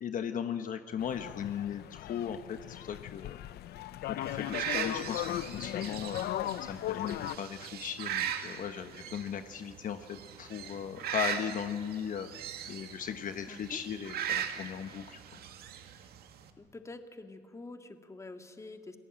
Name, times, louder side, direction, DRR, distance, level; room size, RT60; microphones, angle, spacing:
voice 1, 0.0-3.4 4.1-12.3 12.7-15.2, left 8 dB, 50° left, 8 dB, 1.1 m, -37 dB
sound 1, 1.0-7.4, left 13 dB, 70° left, 0.7 m, -38 dB
sound 2, 4.2-16.5, right 9 dB, 65° right, 2.0 m, -39 dB
voice 2, 13.5-13.8 16.6-19.0, left 2 dB, 15° left, 6 dB, 2.0 m, -47 dB
28.5 x 19.0 x 8.8 m, 2.1 s
cardioid pair, 110°, 17 cm